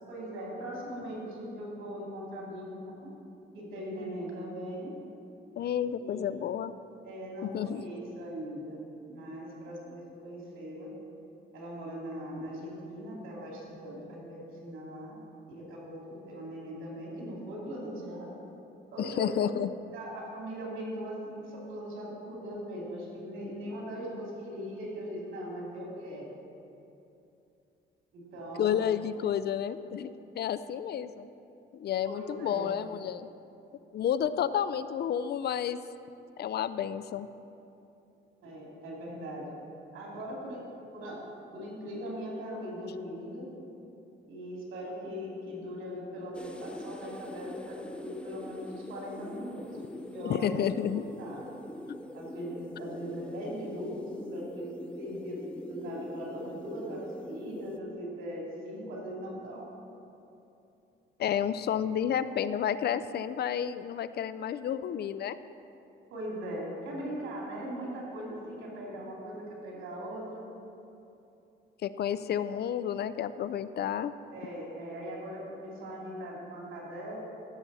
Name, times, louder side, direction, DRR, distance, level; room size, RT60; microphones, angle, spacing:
voice 1, 0.1-3.1 3.5-4.9 6.0-6.2 7.0-8.8 9.1-10.9 11.5-15.2 15.5-18.3 18.9-19.4 19.9-26.3 28.1-28.8 32.1-32.7 38.4-39.5 39.9-40.7 40.9-41.2 41.5-43.5 44.3-49.7 49.9-50.7 51.2-51.4 52.1-59.7 66.1-70.4 74.3-77.2, equal, 85° right, -3 dB, 2.8 m, -40 dB
voice 2, 5.6-6.7 7.4-7.8 19.0-19.7 28.6-31.3 31.7-33.3 33.9-35.8 36.4-37.3 50.2-51.0 51.9-52.0 61.2-65.4 71.8-74.1, left 9 dB, 55° left, 14 dB, 0.4 m, -31 dB
sound 1, 46.3-57.8, left 1 dB, 5° left, 0.5 m, -43 dB
15.5 x 7.0 x 4.1 m, 2.8 s
cardioid pair, 90°, 20 cm